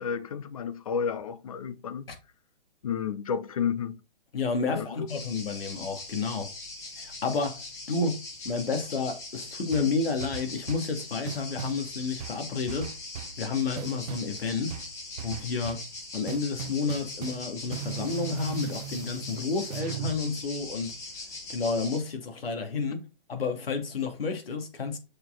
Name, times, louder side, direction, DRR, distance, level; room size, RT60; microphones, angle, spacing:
voice 1, 0.0-2.0 2.8-4.0 4.6-5.1, left 7 dB, 40° left, 0.5 m, -31 dB
voice 2, 4.3-6.5 7.0-7.6 7.9-8.2 8.4-12.9 13.4-14.8 15.2-15.8 16.1-20.9 21.5-23.0 23.3-25.0, left 4 dB, 80° left, 2.6 m, -30 dB
sound 1, 5.1-22.0, left 2 dB, 10° left, 1.0 m, -41 dB
sound 2, 9.7-10.9 11.3-11.8 12.2-13.4 13.8-14.3 14.7-15.9 16.3-17.5 17.7-20.2, right 10 dB, 40° right, 0.8 m, -38 dB
6.6 x 4.6 x 3.8 m
hypercardioid pair, 170°, 29 cm